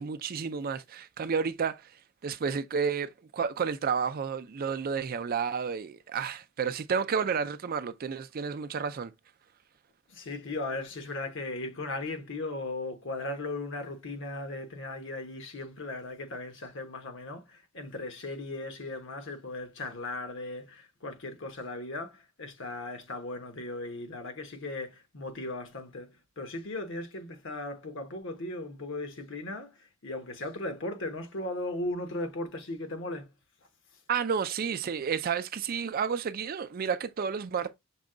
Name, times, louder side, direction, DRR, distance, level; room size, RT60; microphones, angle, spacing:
voice 1, 0.0-1.9 2.2-9.1 34.1-37.7, right 6 dB, 45° right, 0.4 m, -31 dB
voice 2, 10.1-33.3, left 2 dB, 60° left, 1.1 m, -37 dB
6.1 x 2.3 x 3.7 m
head